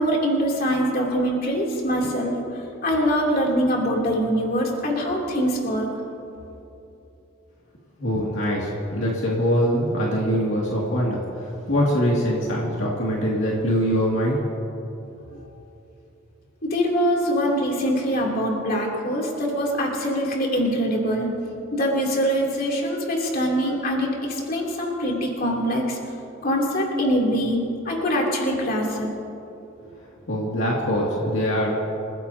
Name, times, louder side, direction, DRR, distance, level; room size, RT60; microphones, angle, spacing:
voice 1, 0.0-5.9 16.6-21.3 21.7-26.0 26.4-29.1, equal, 50° left, -2 dB, 3.1 m, -23 dB
voice 2, 8.0-14.4 15.3-15.4 30.3-31.7, equal, 70° left, -4 dB, 2.4 m, -23 dB
28.0 x 15.5 x 2.8 m, 2.9 s
head